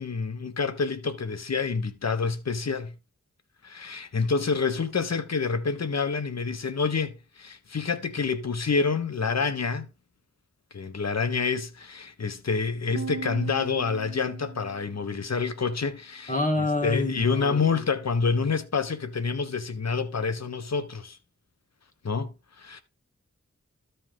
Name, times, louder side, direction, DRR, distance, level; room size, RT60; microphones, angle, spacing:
voice 1, 0.0-2.9 3.6-9.9 10.7-16.3 16.8-21.2 22.0-22.8, left 5 dB, 60° left, 1.3 m, -28 dB
sound 1, 12.9-15.4, right 5 dB, 60° right, 1.4 m, -39 dB
voice 2, 16.3-17.8, left 2 dB, 25° left, 2.4 m, -27 dB
13.0 x 5.5 x 3.7 m
cardioid pair, 55°, 29 cm